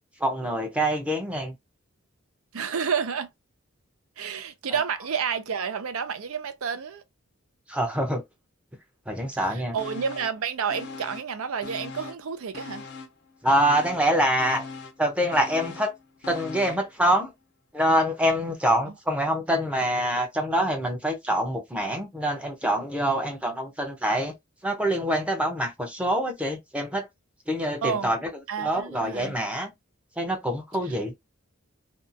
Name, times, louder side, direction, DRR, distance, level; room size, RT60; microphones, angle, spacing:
voice 1, 0.2-1.5 4.7-4.8 7.7-8.2 9.1-9.8 13.4-14.6 15.0-15.9 16.3-17.3 17.7-24.3 24.6-27.1 27.5-28.2 28.6-29.7 30.2-31.1, right 1 dB, 5° right, 0.6 m, -25 dB
voice 2, 2.5-3.3 4.2-7.0 9.5-12.9 27.8-28.1 28.5-29.4, right 6 dB, 85° right, 0.5 m, -30 dB
sound 1, 9.8-10.4 10.7-12.3 12.5-16.9 17.3-17.4, left 4 dB, 55° left, 0.5 m, -41 dB
2.6 x 2.3 x 2.5 m
head